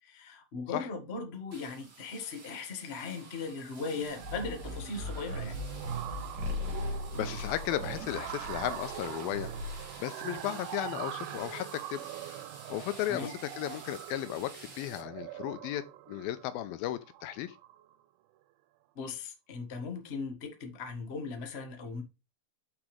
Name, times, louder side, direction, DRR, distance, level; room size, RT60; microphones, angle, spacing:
voice 1, 0.0-5.6 13.1-13.3 18.9-22.0, left 4 dB, 60° left, 0.6 m, -38 dB
sound 1, 1.5-15.0, right 3 dB, 35° right, 3.0 m, -52 dB
sound 2, 1.9-2.2 2.6-2.8 3.1-18.0, right 14 dB, 90° right, 2.5 m, -44 dB
sound 3, 4.2-10.0, left 1 dB, 65° right, 4.4 m, -38 dB
voice 2, 6.7-9.5 10.0-12.1 12.7-17.6, left 13 dB, 90° left, 2.5 m, -35 dB
7.6 x 6.1 x 3.3 m
omnidirectional pair, 4.3 m